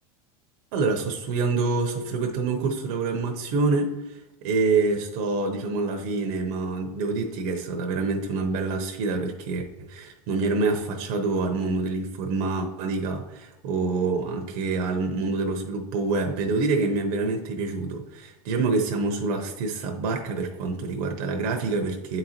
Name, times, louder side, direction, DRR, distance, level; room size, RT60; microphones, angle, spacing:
voice 1, 0.7-22.2, right 3 dB, 60° right, 3 dB, 0.8 m, -26 dB
8.8 x 4.0 x 2.9 m, 0.96 s
supercardioid pair, 115°, 19 cm